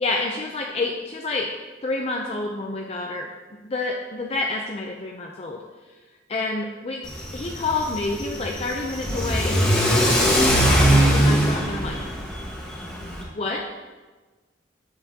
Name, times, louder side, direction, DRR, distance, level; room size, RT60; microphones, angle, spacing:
voice 1, 0.0-1.5 1.8-3.3 3.7-5.6 6.3-7.0 7.3-12.0 13.4-13.6, left 3 dB, 35° left, 0 dB, 0.5 m, -28 dB
Car / Accelerating revving vroom, 7.0-13.2, equal, 5° left, 1.5 m, -21 dB
8.0 x 7.8 x 2.8 m, 1.3 s
head